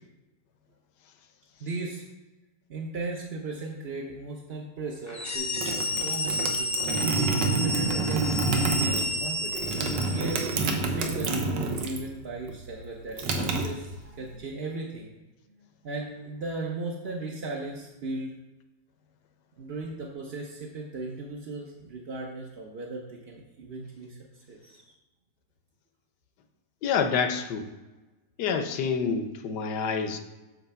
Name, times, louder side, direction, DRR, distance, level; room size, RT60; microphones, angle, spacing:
voice 1, 1.6-2.0 2.7-7.0 7.5-9.7 10.1-10.4 10.9-15.1 15.5-18.3 19.6-24.2 24.5-24.9, right 3 dB, 45° right, -2 dB, 0.9 m, -37 dB
sound 1, 5.1-10.8, left 1 dB, 15° left, 0.5 m, -31 dB
sound 2, 5.3-12.1 12.4-14.3, right 3 dB, 75° right, 1.6 m, -28 dB
voice 2, 26.8-27.7 28.4-30.2, left 6 dB, 70° left, 7 dB, 1.3 m, -27 dB
9.0 x 3.3 x 6.8 m, 1.1 s
omnidirectional pair, 2.0 m